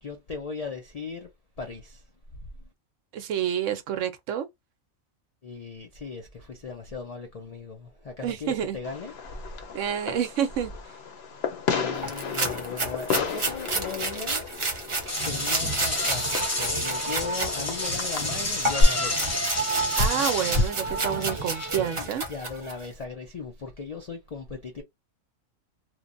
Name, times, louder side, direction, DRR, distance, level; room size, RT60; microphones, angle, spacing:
voice 1, 0.0-1.3 1.6-2.0 2.6-2.7 5.4-9.1 11.7-14.5 15.2-19.5 20.0-21.0 22.0-24.8, left 3 dB, 85° left, 0.3 m, -35 dB
voice 2, 3.1-4.5 8.2-8.8 9.7-10.7 20.0-20.8 21.0-22.2, right 9 dB, 70° right, 0.9 m, -28 dB
Fireworks, 8.8-18.8, left 4 dB, 60° left, 0.8 m, -33 dB
sound 1, 12.0-17.5 17.9-22.9, right 2 dB, 40° right, 0.4 m, -31 dB
sound 2, 15.1-22.0, equal, 15° left, 0.7 m, -29 dB
3.1 x 2.1 x 2.5 m
omnidirectional pair, 1.4 m